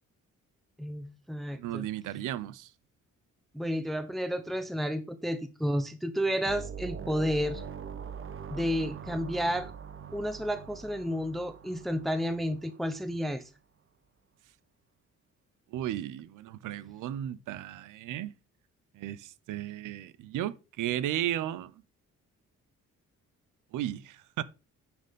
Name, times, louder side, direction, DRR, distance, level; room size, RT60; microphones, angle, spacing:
voice 1, 0.8-1.9 3.5-7.6 8.5-9.7 10.1-13.5, equal, ahead, 0.8 m, -31 dB
voice 2, 1.5-2.7 15.7-18.3 18.9-21.7 23.7-24.4, right 12 dB, 90° right, 0.7 m, -35 dB
sound 1, 6.5-12.9, right 7 dB, 45° right, 1.0 m, -43 dB
10.0 x 4.3 x 5.2 m
cardioid pair, 80°, 30 cm